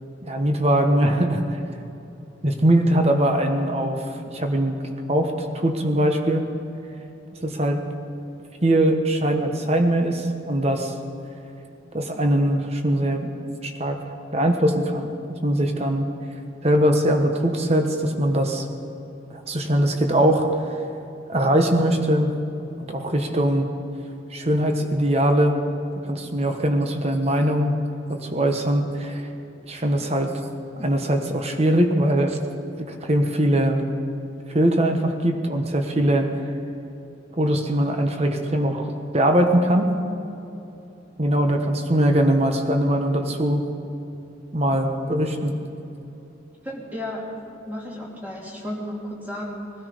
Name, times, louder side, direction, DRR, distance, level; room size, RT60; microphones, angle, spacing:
voice 1, 0.2-1.6 2.4-4.8 5.1-6.4 7.4-7.8 8.6-10.9 11.9-13.3 13.6-14.0 14.3-15.1 15.4-16.1 16.6-18.7 19.3-20.8 21.3-22.3 22.9-23.7 24.3-25.6 26.1-27.7 28.1-29.3 29.7-30.3 30.8-32.4 32.9-33.8 34.5-36.3 37.4-39.9 41.2-43.6 44.5-45.5, right 1 dB, 30° right, 4 dB, 1.3 m, -21 dB
voice 2, 46.6-49.7, left 1 dB, 10° right, -3 dB, 2.7 m, -33 dB
21.0 x 13.0 x 5.2 m, 2.9 s
head